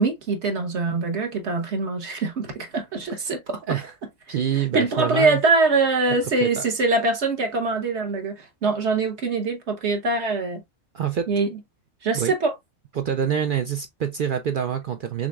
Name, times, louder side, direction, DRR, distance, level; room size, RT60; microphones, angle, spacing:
voice 1, 0.0-3.8 4.3-4.4 4.7-10.6 11.3-11.6 12.0-12.5, right 3 dB, 55° right, 1.2 m, -23 dB
voice 2, 4.3-5.4 6.4-6.7 10.9-11.3 12.1-12.3 13.0-15.3, right 8 dB, 75° right, 0.4 m, -26 dB
6.2 x 3.0 x 2.3 m
omnidirectional pair, 1.5 m